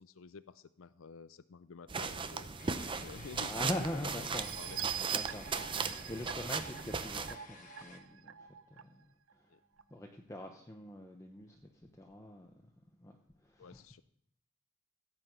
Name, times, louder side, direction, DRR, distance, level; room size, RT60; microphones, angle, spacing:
voice 1, 0.0-4.8 9.5-9.6 13.6-14.0, left 5 dB, 70° left, 14 dB, 0.5 m, -51 dB
sound 1, 1.9-7.3, right 5 dB, 25° right, 0.6 m, -37 dB
sound 2, 2.6-8.0, left 5 dB, 35° left, 1.5 m, -55 dB
voice 2, 3.4-4.5 5.1-9.1 9.9-12.5 13.0-13.2 13.4-13.8, left 1 dB, 15° left, 2 dB, 0.8 m, -43 dB
sound 3, 4.3-8.8 9.3-9.4 9.8-9.9, right 10 dB, 70° right, 0.5 m, -43 dB
15.5 x 5.8 x 7.9 m, 0.71 s
head